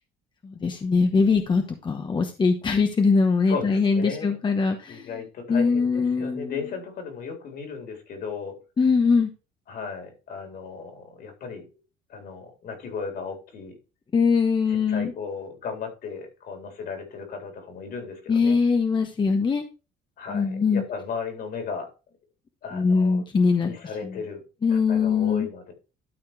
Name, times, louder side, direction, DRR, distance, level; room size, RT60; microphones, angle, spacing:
voice 1, 0.4-5.1 5.5-6.5 8.8-9.3 14.1-15.1 18.3-19.6 20.3-20.8 22.7-23.7 24.0-24.2 24.6-25.5, left 5 dB, 25° left, 1.0 m, -22 dB
voice 2, 3.5-4.4 4.9-8.6 9.7-11.7 12.1-13.8 14.7-18.6 20.2-21.9 22.6-23.3 23.6-24.4 24.7-25.7, left 5 dB, 65° left, 3.7 m, -35 dB
12.0 x 4.3 x 4.8 m
cardioid pair, 110°, 17 cm